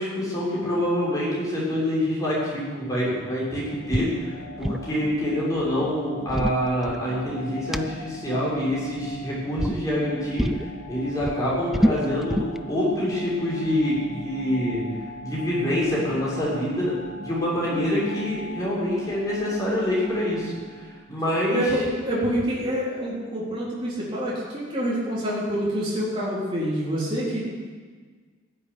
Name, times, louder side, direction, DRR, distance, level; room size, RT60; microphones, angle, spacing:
voice 1, 0.0-10.6 10.9-12.4 12.7-14.8 15.2-16.9 17.2-20.5 21.1-21.7, left 1 dB, 15° left, -8 dB, 6.7 m, -26 dB
sound 1, 2.2-21.1, right 1 dB, 40° left, 3.5 m, -40 dB
sound 2, 3.9-4.1 4.4-4.9 6.0-7.3 7.7-7.8 8.9-9.2 9.6-9.8 10.4-10.7 11.0-12.6, equal, ahead, 0.4 m, -26 dB
voice 2, 21.5-27.4, equal, 25° right, -7 dB, 4.0 m, -26 dB
15.5 x 8.8 x 9.9 m, 1.5 s
head